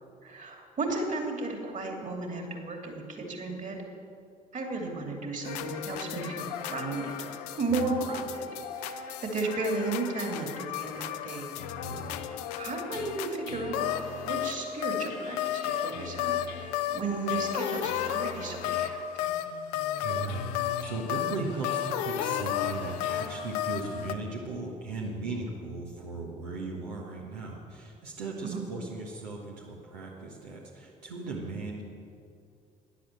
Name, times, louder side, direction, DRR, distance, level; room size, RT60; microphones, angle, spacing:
voice 1, 0.2-3.8 4.5-7.1 7.6-8.4 8.7-11.5 12.6-13.9 14.2-19.0 28.4-28.6, right 3 dB, 35° right, 2 dB, 2.8 m, -34 dB
sound 1, 5.4-24.1, left 10 dB, 70° left, 0.7 m, -33 dB
voice 2, 20.0-31.8, right 3 dB, 75° right, -2 dB, 1.4 m, -37 dB
12.0 x 10.5 x 7.6 m, 2.4 s
figure-of-eight pair, 50°, 21 cm